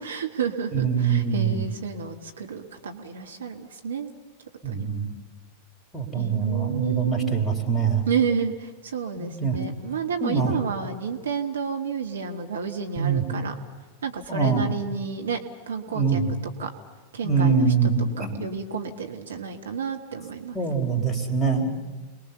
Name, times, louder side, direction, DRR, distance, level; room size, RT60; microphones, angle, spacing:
voice 1, 0.0-4.1 4.7-4.9 6.1-7.4 8.1-13.5 14.0-15.4 15.7-16.2 16.6-16.7 17.1-17.7 18.2-20.6, right 6 dB, 70° right, 4 dB, 2.0 m, -30 dB
voice 2, 0.7-1.6 4.6-5.2 5.9-8.0 9.2-9.6 10.2-10.5 13.0-13.2 14.3-14.6 15.9-16.3 17.2-18.4 20.5-21.7, right 5 dB, 5° left, 2 dB, 3.9 m, -24 dB
29.0 x 21.0 x 7.0 m, 1.4 s
figure-of-eight pair, 90°, 0 cm